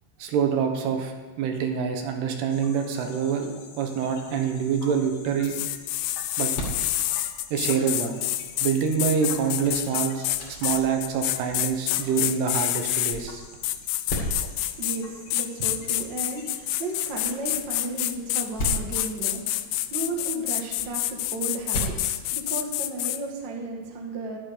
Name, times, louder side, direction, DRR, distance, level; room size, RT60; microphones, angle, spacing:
voice 1, 0.2-5.6 6.4-6.5 7.5-8.2 8.6-13.4, right 7 dB, 75° right, 4 dB, 3.2 m, -26 dB
sound 1, 2.5-17.4, left 4 dB, 65° left, 3.4 m, -47 dB
sound 2, 5.4-13.2 13.6-15.0 15.3-23.2, left 15 dB, 85° left, 2.6 m, -28 dB
sound 3, 5.6-23.0, right 1 dB, 40° left, 2.6 m, -39 dB
voice 2, 14.6-24.4, right 2 dB, 50° right, 1 dB, 1.4 m, -34 dB
11.5 x 11.0 x 5.1 m, 1.3 s
omnidirectional pair, 4.8 m